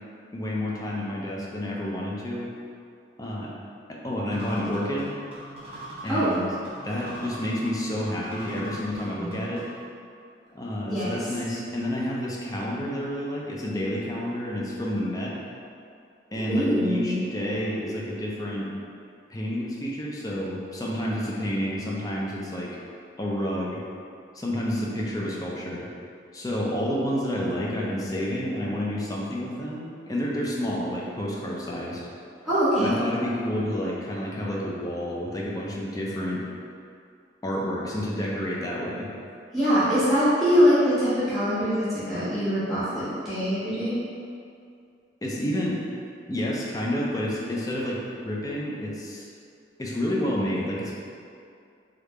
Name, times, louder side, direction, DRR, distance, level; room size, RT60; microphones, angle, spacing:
voice 1, 0.3-2.5 3.2-3.5 3.9-5.1 6.0-6.5 6.8-9.6 10.5-15.3 16.3-18.7 19.3-22.7 23.2-23.8 24.3-25.9 26.3-32.0 32.8-36.4 37.4-39.1 45.2-45.8 46.3-49.3 49.8-50.9, equal, 20° left, -4 dB, 0.4 m, -29 dB
sound 1, 4.3-9.9, equal, 35° right, 0.5 m, -42 dB
voice 2, 16.3-17.2 17.5-17.9 32.4-33.0 39.5-44.0, equal, ahead, -16 dB, 1.1 m, -23 dB
3.3 x 2.4 x 3.2 m, 2.4 s
head